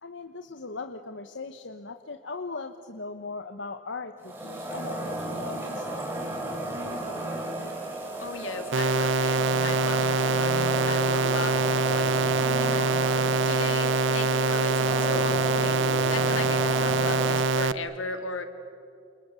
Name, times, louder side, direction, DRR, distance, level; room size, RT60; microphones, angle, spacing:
voice 1, 0.0-6.3, left 3 dB, 65° left, 7 dB, 1.1 m, -39 dB
sound 1, 4.2-17.4, right 1 dB, 10° right, 4.2 m, -34 dB
voice 2, 8.2-13.2 13.4-18.4, left 3 dB, 85° left, 7 dB, 2.7 m, -37 dB
sound 2, 8.7-17.7, right 3 dB, 75° right, 0.8 m, -24 dB
29.0 x 28.5 x 7.0 m, 2.5 s
head